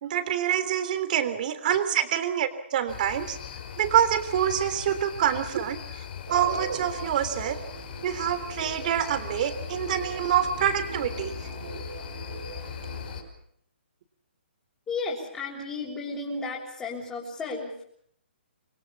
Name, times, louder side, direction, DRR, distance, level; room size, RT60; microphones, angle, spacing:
voice 1, 0.0-3.4 3.8-5.8 6.3-7.6 8.0-11.3, right 9 dB, 45° right, 11 dB, 3.4 m, -26 dB
sound 1, 2.9-13.2, left 9 dB, 50° left, 5.6 m, -39 dB
sound 2, 6.3-13.3, right 5 dB, 65° right, 7.5 m, -41 dB
voice 2, 14.9-17.9, left 3 dB, 10° left, -6 dB, 6.0 m, -34 dB
27.5 x 21.5 x 7.3 m, 0.69 s
hypercardioid pair, 150°, 6 cm